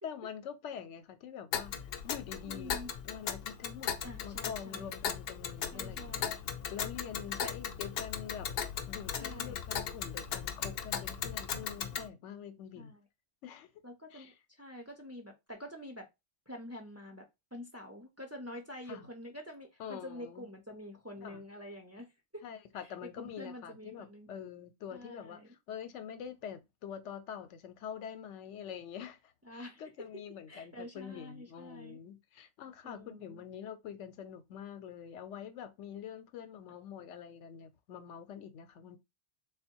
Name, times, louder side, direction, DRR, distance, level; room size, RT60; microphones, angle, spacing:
voice 1, 0.0-1.7 2.0-2.8 3.0-3.9 4.2-6.4 6.7-8.5 8.9-12.9 13.4-13.7 14.1-14.3 18.9-19.1 19.8-20.5 21.2-21.4 22.4-29.2 29.5-39.0, left 8 dB, 90° left, 0.9 m, -45 dB
Tick, 1.5-12.1, left 8 dB, 65° left, 0.7 m, -38 dB
voice 2, 2.3-2.9 4.0-4.9 5.7-6.3 7.4-7.6 9.2-9.6 12.8-13.0 13.8-16.1 16.5-22.4 22.8-24.3 24.9-25.6 29.4-30.1 30.5-32.0 32.8-33.4, left 1 dB, 20° right, 0.5 m, -47 dB
3.6 x 2.2 x 4.4 m
omnidirectional pair, 1.2 m